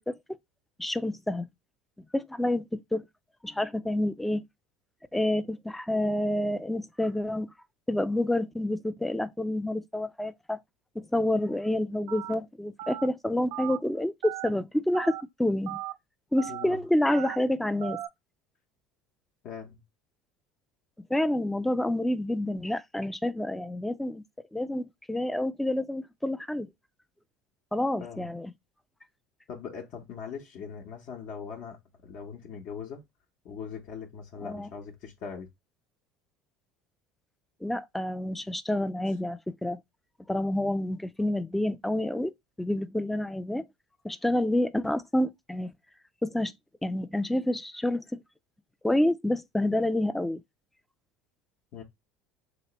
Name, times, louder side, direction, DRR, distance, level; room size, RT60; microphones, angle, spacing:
voice 1, 0.8-1.5 2.1-3.0 3.4-4.4 5.1-7.5 7.9-10.6 11.0-15.8 16.3-18.0 21.1-24.2 24.5-26.7 27.7-28.5 34.4-34.7 37.6-39.8 40.3-43.6 44.0-45.7 46.2-46.5 46.8-48.0 48.8-50.4, left 1 dB, 5° left, 0.4 m, -28 dB
Telephone, 12.1-12.3 12.8-13.1 13.5-13.8 14.2-14.5 14.9-15.2 15.7-15.9 16.4-16.6 17.1-17.4 17.8-18.1, right 14 dB, 80° right, 0.5 m, -37 dB
voice 2, 16.5-16.8 19.4-19.8 28.0-28.3 29.5-33.0 33.4-35.5 51.7-51.8, left 6 dB, 60° left, 0.9 m, -41 dB
3.2 x 3.0 x 3.0 m
supercardioid pair, 100°, 3 cm